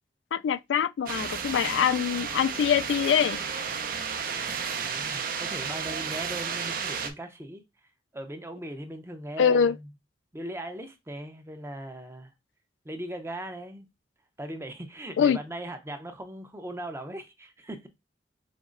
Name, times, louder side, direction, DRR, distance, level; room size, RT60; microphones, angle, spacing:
voice 1, 0.3-3.4 9.4-9.7 15.2-15.4, left 7 dB, 90° left, 0.3 m, -24 dB
sound 1, 1.1-7.1, right 6 dB, 55° right, 0.6 m, -32 dB
voice 2, 4.8-7.6 8.1-9.8 10.3-12.3 12.8-13.9 14.4-17.9, right 1 dB, 15° right, 0.6 m, -39 dB
5.0 x 2.9 x 2.5 m
head